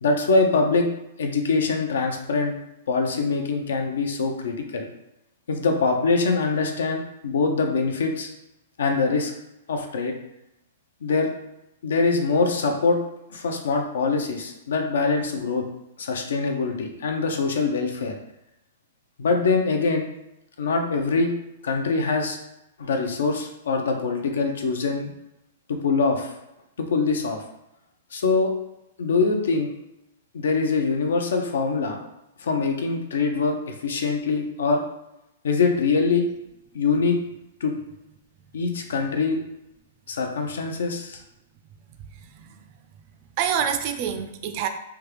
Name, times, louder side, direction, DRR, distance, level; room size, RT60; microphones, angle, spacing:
voice 1, 0.0-0.9 1.2-2.5 2.9-4.9 5.5-8.3 8.8-9.3 9.7-10.1 11.0-11.3 11.8-13.0 13.3-15.6 16.0-18.1 19.2-20.1 20.6-21.3 21.6-22.4 22.8-25.1 25.7-26.3 26.8-27.4 28.1-28.5 29.0-29.7 30.3-32.1 32.4-34.8 35.4-36.3 36.7-37.2 37.6-37.8 38.5-39.4 40.1-41.2, left 4 dB, 85° left, 4 dB, 0.6 m, -23 dB
voice 2, 42.2-42.7 43.4-44.7, right 8 dB, 40° right, 7 dB, 0.4 m, -27 dB
3.3 x 2.4 x 3.2 m, 0.87 s
hypercardioid pair, 150°, 0 cm